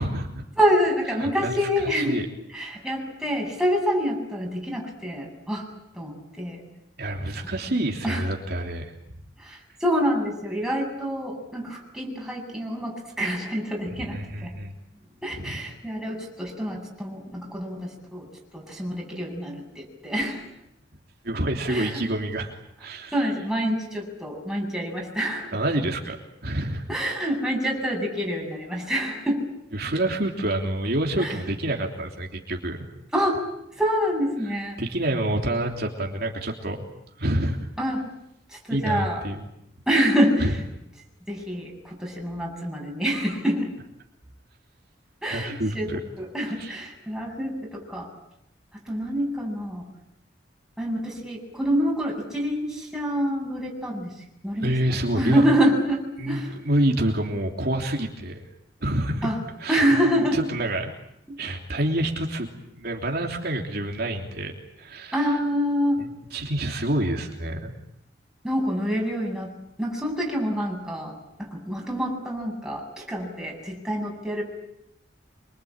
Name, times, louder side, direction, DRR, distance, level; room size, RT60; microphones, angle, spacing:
voice 1, 0.0-0.4 1.2-1.5 1.9-2.2 7.0-8.9 14.1-14.7 15.3-15.6 21.2-22.5 22.8-23.1 25.5-26.2 26.4-26.8 29.7-32.8 34.8-36.8 37.2-37.7 38.7-39.4 40.4-40.5 45.3-46.0 46.6-46.7 54.6-55.4 56.2-58.4 58.8-59.3 59.6-60.0 60.3-60.9 61.4-62.5 62.7-65.2 66.0-66.1 66.3-67.7, right 1 dB, 60° right, 1 dB, 3.2 m, -27 dB
voice 2, 0.6-2.2 2.5-5.7 5.9-6.6 8.0-8.2 9.4-14.5 15.2-18.3 18.5-20.4 21.7-22.0 23.1-25.6 26.9-29.4 31.2-31.4 33.1-33.4 33.8-34.8 37.8-38.0 38.5-39.2 39.9-40.5 41.3-43.7 45.2-45.9 46.2-48.1 48.9-49.9 50.8-54.1 54.4-54.7 55.1-56.6 59.2-59.4 59.7-60.4 61.3-61.4 65.1-66.0 68.4-69.5 69.8-74.4, equal, 5° right, -1 dB, 8.0 m, -26 dB
26.5 x 24.5 x 8.9 m, 0.80 s
head